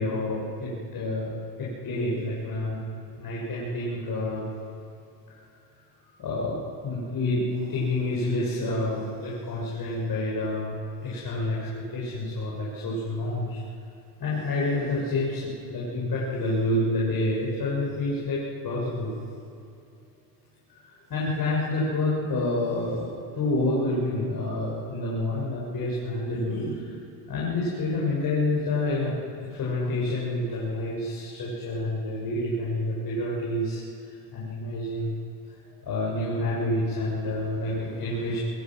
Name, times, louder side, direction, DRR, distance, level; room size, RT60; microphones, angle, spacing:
voice 1, 0.0-2.8 3.2-4.4 6.2-13.6 14.2-19.1 20.8-23.1 23.3-26.9 27.3-29.2 29.5-35.1 35.8-38.4, left 2 dB, 45° left, -6 dB, 6.8 m, -28 dB
23.5 x 21.5 x 6.3 m, 2.5 s
supercardioid pair, 85°, 48 cm